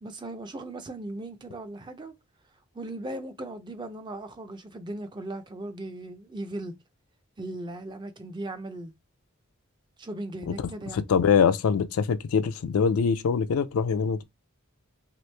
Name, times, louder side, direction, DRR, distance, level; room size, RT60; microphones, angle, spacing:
voice 1, 0.0-2.1 2.7-6.7 7.4-8.9 10.0-11.0, right 1 dB, 20° right, 0.4 m, -38 dB
voice 2, 10.9-14.2, left 6 dB, 80° left, 0.4 m, -24 dB
3.0 x 2.6 x 3.2 m
head